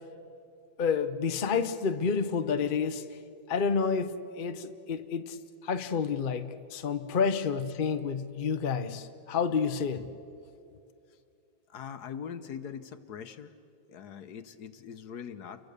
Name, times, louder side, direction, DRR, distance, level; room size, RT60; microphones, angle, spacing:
voice 1, 0.8-3.1 3.5-5.4 5.6-10.1, left 6 dB, 45° left, 9 dB, 0.6 m, -29 dB
voice 2, 11.7-13.5 13.9-15.7, left 7 dB, 60° left, 10 dB, 1.4 m, -42 dB
29.5 x 23.5 x 6.7 m, 2.5 s
omnidirectional pair, 2.1 m